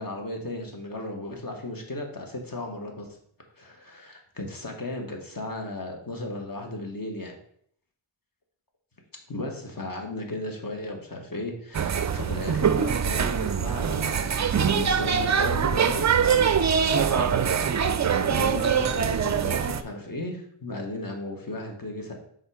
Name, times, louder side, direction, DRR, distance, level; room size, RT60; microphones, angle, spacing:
voice 1, 0.0-3.2 3.6-7.4 9.3-14.3 14.6-16.6 17.1-17.9 18.2-22.1, left 2 dB, 45° left, 2 dB, 1.3 m, -35 dB
sound 1, 11.7-19.8, right 7 dB, 40° right, 0.4 m, -23 dB
5.3 x 3.8 x 4.8 m, 0.66 s
wide cardioid pair, 70°, 47 cm